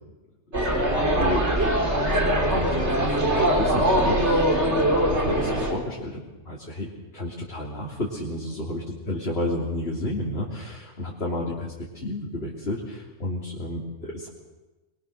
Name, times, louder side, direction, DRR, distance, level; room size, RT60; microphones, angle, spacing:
voice 1, 0.5-14.3, left 1 dB, 55° left, -4 dB, 3.3 m, -32 dB
sound 1, 0.5-5.7, right 1 dB, 65° right, 3.9 m, -22 dB
25.0 x 21.5 x 6.6 m, 1.2 s
omnidirectional pair, 1.3 m